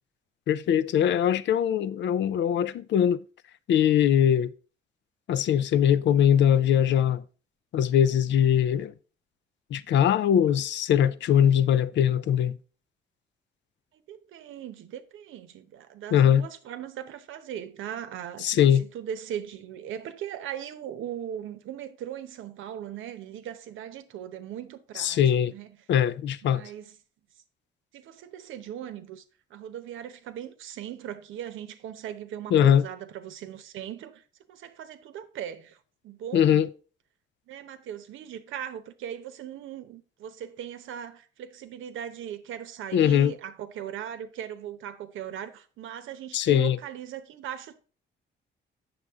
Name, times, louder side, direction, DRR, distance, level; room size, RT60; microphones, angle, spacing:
voice 1, 0.5-3.2 3.7-4.5 5.3-7.2 7.7-8.9 9.7-12.6 16.1-16.5 18.4-18.8 25.0-25.5 25.9-26.6 32.5-32.8 36.3-36.7 42.9-43.3 46.3-46.8, left 9 dB, 65° left, 0.5 m, -21 dB
voice 2, 13.9-25.7 26.5-27.0 27.9-29.2 29.5-34.2 34.5-35.8 36.0-36.6 37.5-47.8, right 10 dB, 80° right, 0.9 m, -39 dB
7.9 x 6.5 x 3.6 m
cardioid pair, 90°, 20 cm